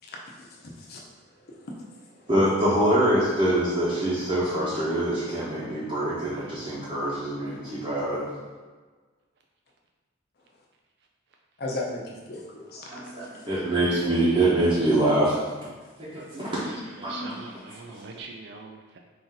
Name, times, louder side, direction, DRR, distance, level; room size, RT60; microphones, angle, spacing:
voice 1, 0.4-1.0 1.6-2.0 11.6-12.9 13.2-13.4, left 2 dB, 50° left, -1 dB, 0.7 m, -36 dB
voice 2, 2.3-8.2 12.9-15.4 16.0-17.4 17.9-18.0, right 1 dB, 25° right, -11 dB, 0.9 m, -25 dB
voice 3, 13.8-14.9 16.9-19.0, right 3 dB, 55° right, 2 dB, 0.3 m, -42 dB
4.2 x 2.7 x 3.9 m, 1.4 s
head